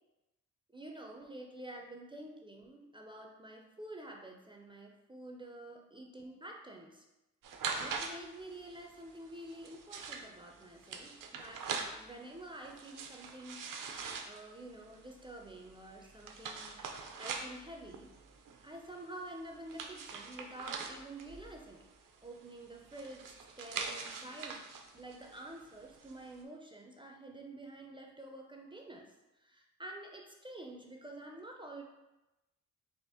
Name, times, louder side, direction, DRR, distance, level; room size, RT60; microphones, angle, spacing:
voice 1, 0.7-7.0 7.7-11.7 11.9-13.7 14.3-16.8 17.2-18.1 18.6-21.9 22.2-24.7 24.9-29.1 29.4-31.8, right 1 dB, 15° right, 1 dB, 0.4 m, -49 dB
sound 1, 7.4-26.4, right 5 dB, 75° right, 0.5 m, -44 dB
4.1 x 2.8 x 3.5 m, 0.97 s
wide cardioid pair, 160°, 32 cm